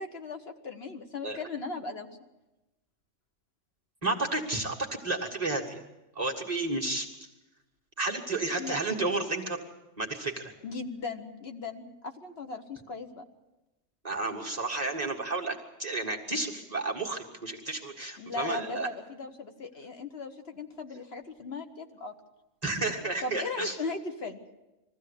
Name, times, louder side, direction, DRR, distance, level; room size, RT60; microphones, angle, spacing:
voice 1, 0.0-2.1 8.6-8.8 10.6-13.2 18.2-22.1 23.2-24.4, left 3 dB, 55° left, 5 dB, 1.4 m, -38 dB
voice 2, 4.0-4.8 5.0-5.8 6.2-7.1 8.0-9.6 10.0-10.5 14.0-18.9 22.6-23.8, right 2 dB, 30° right, -1 dB, 1.9 m, -31 dB
21.5 x 15.0 x 8.3 m, 1.0 s
omnidirectional pair, 1.3 m